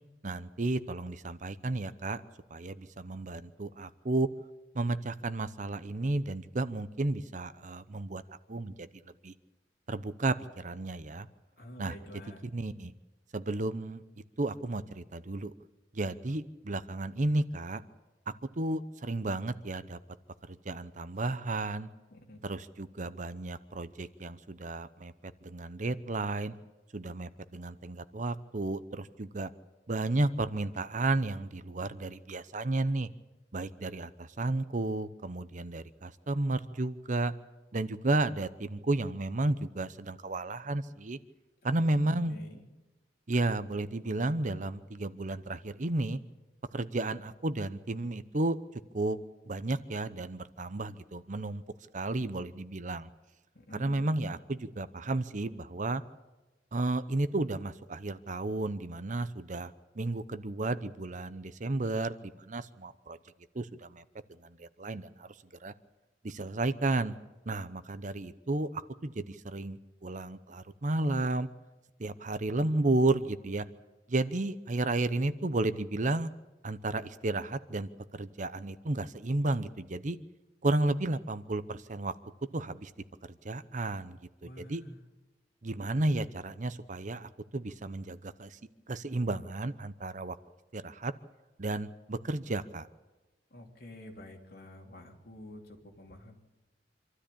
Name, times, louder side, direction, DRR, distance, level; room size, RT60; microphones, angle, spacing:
voice 1, 0.2-2.2 2.5-4.3 4.7-8.9 9.2-9.3 9.9-11.3 11.8-11.9 12.5-12.9 13.3-14.0 14.4-15.5 15.9-17.8 18.3-20.0 20.5-21.9 22.4-26.5 26.9-29.5 29.9-33.1 33.5-37.3 37.7-41.2 41.6-42.4 43.3-46.2 46.7-49.2 49.5-51.6 51.9-53.1 53.7-56.0 56.7-63.2 63.5-64.0 64.4-65.3 65.6-65.7 66.2-67.1 67.5-71.5 72.0-73.7 74.1-76.3 76.6-80.2 80.6-82.1 82.5-82.9 83.2-84.8 85.6-88.6 88.9-90.4 90.7-91.1 91.6-92.9, right 2 dB, 45° right, 13 dB, 0.8 m, -33 dB
voice 2, 11.6-12.5 22.1-22.4 41.6-42.7 53.5-54.1 84.4-85.0 93.5-96.3, left 1 dB, 55° left, 1 dB, 3.4 m, -49 dB
26.0 x 13.0 x 8.6 m, 1.1 s
head